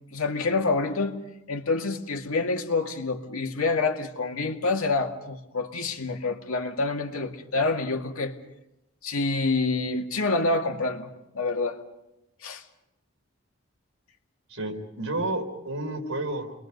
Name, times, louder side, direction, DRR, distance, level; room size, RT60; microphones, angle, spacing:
voice 1, 0.1-1.2 1.5-8.3 9.0-11.8 12.4-12.6, left 3 dB, 80° left, 3 dB, 2.3 m, -27 dB
voice 2, 14.5-16.5, right 2 dB, 70° right, 4 dB, 3.8 m, -31 dB
29.5 x 22.5 x 5.4 m, 0.90 s
head